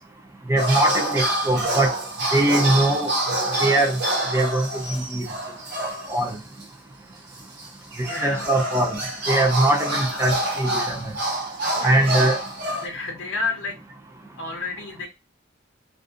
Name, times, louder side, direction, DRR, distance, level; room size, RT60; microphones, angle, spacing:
voice 1, 0.5-1.9 2.3-3.1 3.6-3.9 4.3-4.7 5.1-5.2 6.1-6.3 8.2-9.0 9.3-11.1 11.8-12.4, right 1 dB, 15° right, 0.4 m, -21 dB
sound 1, 0.6-6.3 6.6-6.7 7.6-12.9, right 1 dB, 60° right, 1.0 m, -27 dB
voice 2, 8.1-8.5 9.9-10.2 11.6-12.1 12.8-13.7 14.4-15.1, left 3 dB, 90° left, 0.6 m, -31 dB
2.4 x 2.4 x 2.4 m
head